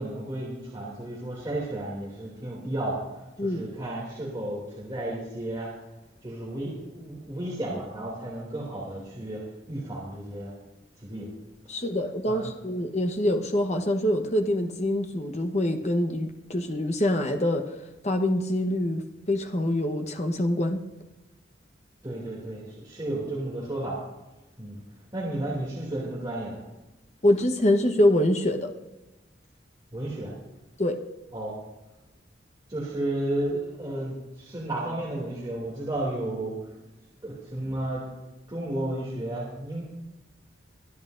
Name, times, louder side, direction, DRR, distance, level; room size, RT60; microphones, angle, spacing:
voice 1, 0.0-3.0 3.4-5.7 6.2-9.4 9.7-10.5 11.0-11.3 12.3-12.5 22.0-24.0 24.6-24.8 25.1-26.6 29.9-30.3 31.3-31.6 32.7-36.7 37.2-38.0 38.5-39.8, right 1 dB, 25° right, -6 dB, 2.7 m, -33 dB
voice 2, 11.7-17.7 18.0-20.8 27.2-28.7 30.8-31.0, left 1 dB, 40° left, 5 dB, 1.1 m, -25 dB
23.5 x 10.5 x 2.6 m, 1.0 s
head